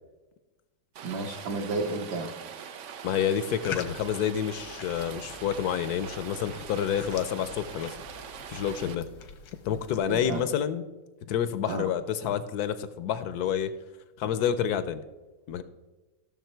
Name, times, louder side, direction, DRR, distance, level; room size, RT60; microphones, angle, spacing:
Rain, 0.9-8.9, right 7 dB, 90° right, 0.6 m, -43 dB
voice 1, 1.0-2.3 10.1-10.4 11.7-11.8, right 3 dB, 60° right, -1 dB, 1.4 m, -32 dB
voice 2, 3.0-8.0 8.5-9.1 9.6-10.9 11.3-13.7 14.2-15.0 15.5-15.6, left 9 dB, 70° left, 13 dB, 0.9 m, -28 dB
sound 1, 3.6-10.4, left 7 dB, 85° left, 1.8 m, -44 dB
14.5 x 6.4 x 4.5 m, 1.1 s
omnidirectional pair, 2.1 m